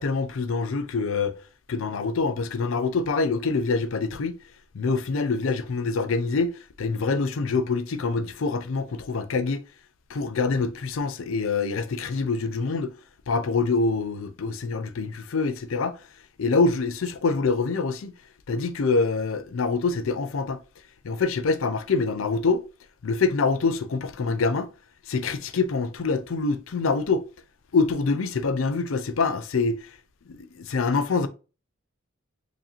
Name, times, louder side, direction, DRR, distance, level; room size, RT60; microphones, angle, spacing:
voice 1, 0.0-1.3 1.7-4.4 4.7-9.6 10.1-12.9 13.3-16.0 16.4-18.2 18.5-20.6 21.0-22.6 23.0-24.7 25.1-27.3 27.7-29.9 30.3-31.3, left 4 dB, 80° left, 0.5 m, -25 dB
4.8 x 2.6 x 2.9 m
head